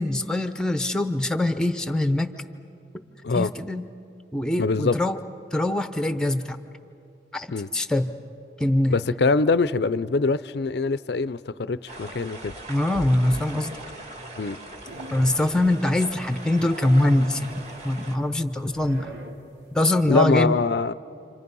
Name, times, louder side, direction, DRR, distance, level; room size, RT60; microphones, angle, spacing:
voice 1, 0.0-2.3 3.3-3.8 4.3-5.2 5.5-6.6 7.3-7.5 7.7-8.1 8.6-8.9 12.7-13.8 15.1-17.5 17.8-19.1 19.7-20.6, left 1 dB, 5° left, 9 dB, 0.8 m, -23 dB
voice 2, 4.6-5.0 7.5-7.7 8.9-12.6 14.4-14.6 20.1-20.9, left 4 dB, 70° left, 16 dB, 0.5 m, -23 dB
sound 1, 11.9-18.2, right 1 dB, 40° right, 2.5 m, -40 dB
sound 2, 14.9-15.4 15.8-16.3 16.6-19.9, right 2 dB, 85° right, 2.5 m, -43 dB
30.0 x 26.0 x 5.5 m, 2.6 s
head